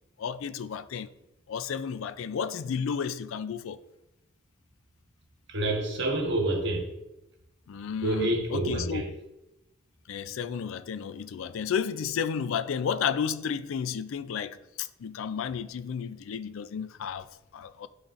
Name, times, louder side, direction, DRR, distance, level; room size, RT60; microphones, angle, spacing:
voice 1, 0.2-1.1 1.5-3.8 7.7-9.2 10.1-17.9, left 7 dB, 75° left, 0.4 m, -32 dB
voice 2, 5.5-6.9 8.0-9.1, right 1 dB, 60° right, 1.3 m, -28 dB
11.5 x 4.1 x 2.5 m
head